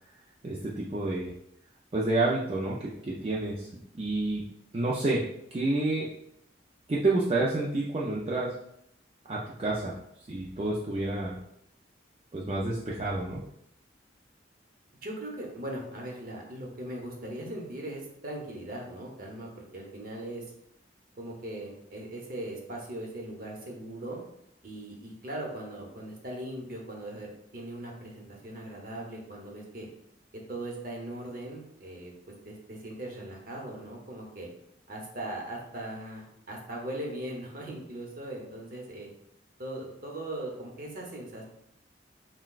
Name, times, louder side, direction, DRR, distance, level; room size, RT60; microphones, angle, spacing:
voice 1, 0.4-1.3 1.9-3.7 4.0-4.4 4.7-5.2 5.5-6.1 6.9-8.5 9.3-9.9 10.3-11.4 12.3-13.4, right 2 dB, 35° right, -5 dB, 0.4 m, -29 dB
voice 2, 15.0-20.5 21.2-24.2 24.6-29.9 30.5-32.1 32.4-34.5 34.9-39.1 39.6-41.4, right 1 dB, 50° right, -1 dB, 0.9 m, -39 dB
5.8 x 2.2 x 2.4 m, 0.75 s
head